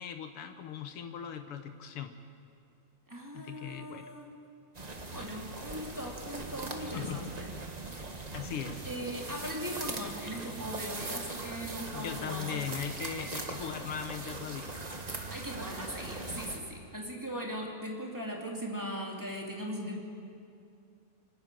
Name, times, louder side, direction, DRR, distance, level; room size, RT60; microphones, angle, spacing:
voice 1, 0.0-2.1 3.3-4.1 6.8-7.4 8.3-8.9 11.9-14.7, left 8 dB, 65° left, 8 dB, 1.5 m, -39 dB
voice 2, 3.1-4.3 5.1-7.5 8.9-12.6 13.2-13.3 15.3-20.0, equal, 5° right, -1 dB, 2.1 m, -39 dB
sound 1, 4.7-16.6, right 2 dB, 50° right, 0.4 m, -40 dB
Piano, 13.0-14.3, right 4 dB, 75° right, 0.9 m, -49 dB
26.0 x 12.0 x 9.0 m, 2.6 s
omnidirectional pair, 3.4 m